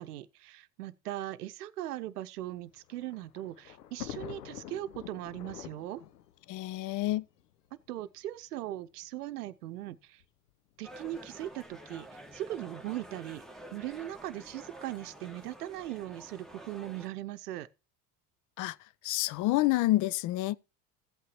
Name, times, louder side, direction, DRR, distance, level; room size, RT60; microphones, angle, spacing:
voice 1, 0.0-6.0 7.7-10.2 10.8-13.4 13.7-17.7, right 14 dB, 70° right, 0.8 m, -39 dB
Thunder, 2.5-7.9 8.7-8.8 9.0-9.1 10.2-10.5, left 11 dB, 75° left, 0.8 m, -46 dB
voice 2, 6.5-7.3 18.6-18.8 19.0-20.6, left 17 dB, 40° left, 0.6 m, -28 dB
sound 1, 10.8-17.1, right 1 dB, ahead, 1.4 m, -49 dB
15.5 x 8.3 x 3.1 m
figure-of-eight pair, 65°, 48 cm